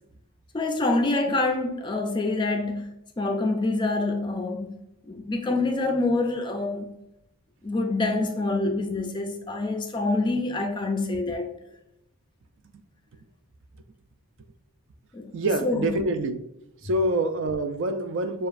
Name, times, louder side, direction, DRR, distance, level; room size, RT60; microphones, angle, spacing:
voice 1, 0.5-4.8 5.1-6.9 7.6-11.5 15.1-15.3 15.6-16.0, left 2 dB, 20° left, 0.3 m, -26 dB
voice 2, 15.3-16.4 16.8-18.5, right 1 dB, 55° right, 0.4 m, -26 dB
6.7 x 2.4 x 2.5 m
head